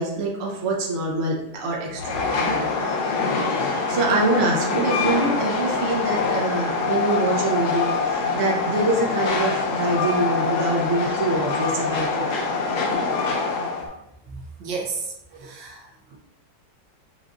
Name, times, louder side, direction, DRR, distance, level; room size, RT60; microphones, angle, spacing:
voice 1, 0.0-2.7 3.4-12.3, right 2 dB, 60° right, -2 dB, 0.7 m, -25 dB
Train, 2.0-13.9, left 4 dB, 85° left, 1.6 m, -24 dB
voice 2, 14.3-16.2, right 4 dB, 85° right, 1 dB, 1.6 m, -33 dB
6.1 x 2.5 x 2.5 m, 0.84 s
omnidirectional pair, 2.1 m